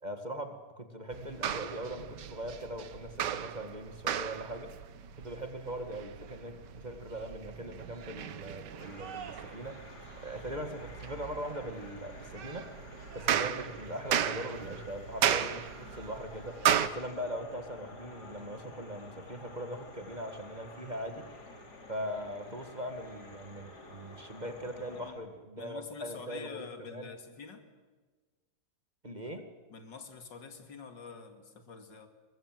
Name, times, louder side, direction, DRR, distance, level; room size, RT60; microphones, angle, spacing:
voice 1, 0.0-4.7 5.2-9.8 10.2-12.7 13.1-21.3 21.9-27.1 29.0-29.5, equal, 25° right, 7 dB, 1.8 m, -40 dB
sound 1, 1.1-16.9, right 9 dB, 75° right, 1.6 m, -35 dB
sound 2, 8.8-25.1, left 2 dB, 65° left, 3.9 m, -51 dB
voice 2, 21.1-21.7 24.9-25.2 25.5-27.6 29.3-29.4 29.7-32.1, left 5 dB, 80° left, 7 dB, 2.9 m, -47 dB
23.0 x 21.0 x 7.6 m, 1.4 s
omnidirectional pair, 1.9 m